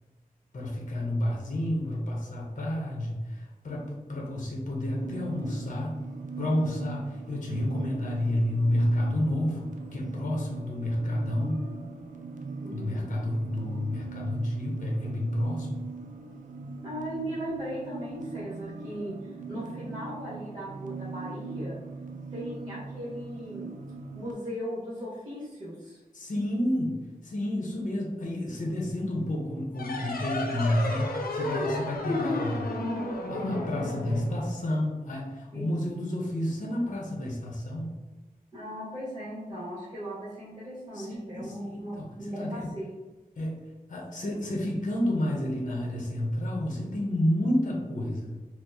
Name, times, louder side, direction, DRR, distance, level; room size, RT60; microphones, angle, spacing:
voice 1, 0.5-6.0 6.4-11.6 12.7-15.8 26.1-32.7 33.3-38.0 40.9-42.7 43.4-48.4, left 1 dB, 60° left, -2 dB, 0.7 m, -30 dB
sound 1, 4.9-24.3, right 4 dB, 60° right, 0.4 m, -40 dB
voice 2, 12.6-13.1 16.8-21.8 22.3-23.7 24.1-26.0 35.5-35.7 38.5-42.9, equal, 25° right, -8 dB, 1.1 m, -38 dB
sound 2, 29.7-35.0, left 2 dB, 90° left, 0.5 m, -32 dB
4.4 x 2.0 x 2.7 m, 1.2 s
wide cardioid pair, 90°, 15 cm